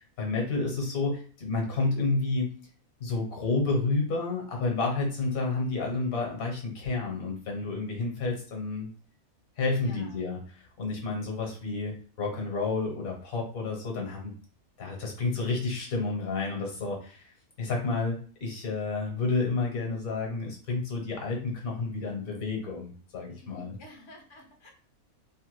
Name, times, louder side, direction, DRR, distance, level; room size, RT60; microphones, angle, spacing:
voice 1, 0.0-2.6 3.0-8.9 9.6-14.3 14.8-23.7, left 3 dB, 75° left, 0 dB, 1.4 m, -30 dB
voice 2, 9.7-10.3 23.4-24.7, equal, 35° left, 1 dB, 0.5 m, -50 dB
3.4 x 2.2 x 3.0 m, 0.42 s
omnidirectional pair, 1.5 m